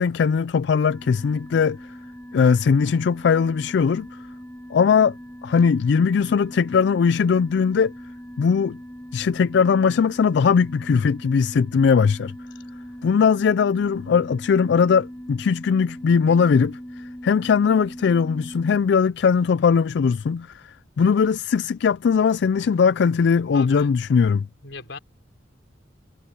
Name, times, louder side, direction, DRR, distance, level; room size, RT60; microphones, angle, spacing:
voice 1, 0.0-1.8 2.3-4.1 4.7-5.1 5.4-7.9 8.4-8.8 9.1-12.3 13.0-24.5, left 6 dB, 65° left, 0.3 m, -20 dB
sound 1, 0.9-18.8, equal, 10° left, 2.1 m, -40 dB
voice 2, 23.5-23.9 24.6-25.0, left 3 dB, 80° left, 4.1 m, -38 dB
head